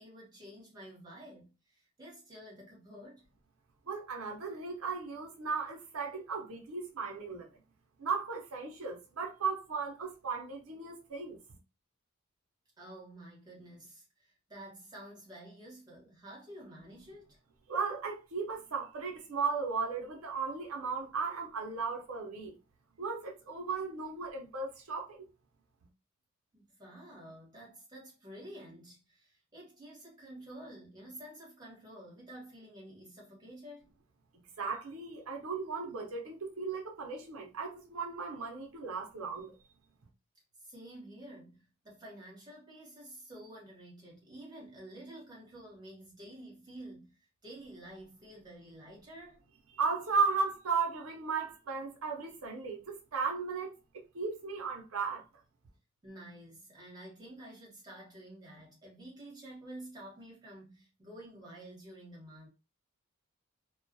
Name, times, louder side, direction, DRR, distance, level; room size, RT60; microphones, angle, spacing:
voice 1, 0.0-3.2 12.8-17.4 26.5-33.9 40.6-49.4 56.0-62.5, right 1 dB, 15° right, 1.0 m, -50 dB
voice 2, 3.9-7.6 8.0-11.4 17.7-22.5 23.0-25.3 34.6-39.5 49.7-55.3, right 5 dB, 70° right, 0.6 m, -36 dB
2.2 x 2.2 x 2.6 m
head